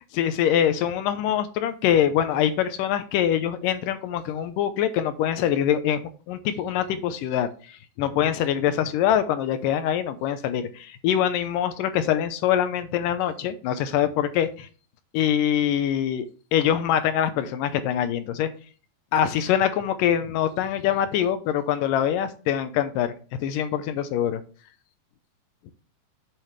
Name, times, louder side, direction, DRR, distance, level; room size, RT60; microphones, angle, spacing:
voice 1, 0.1-6.0 6.3-14.7 15.1-16.3 16.5-18.5 19.1-23.1 23.4-24.4, left 10 dB, 75° left, 11 dB, 2.3 m, -24 dB
7.6 x 7.3 x 3.2 m, 0.38 s
omnidirectional pair, 4.1 m